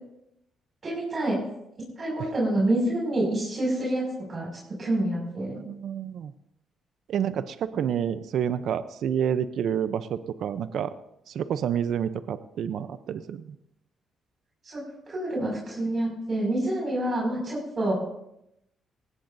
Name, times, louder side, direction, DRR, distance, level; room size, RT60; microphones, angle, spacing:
voice 1, 0.8-1.4 2.0-4.5 4.8-5.6 14.6-14.8 15.1-17.9, right 1 dB, 45° right, -3 dB, 6.0 m, -27 dB
voice 2, 5.6-6.3 7.1-10.9 11.3-13.4, right 8 dB, 75° right, 12 dB, 0.7 m, -29 dB
19.5 x 16.0 x 2.7 m, 0.81 s
cardioid pair, 90°, 0 cm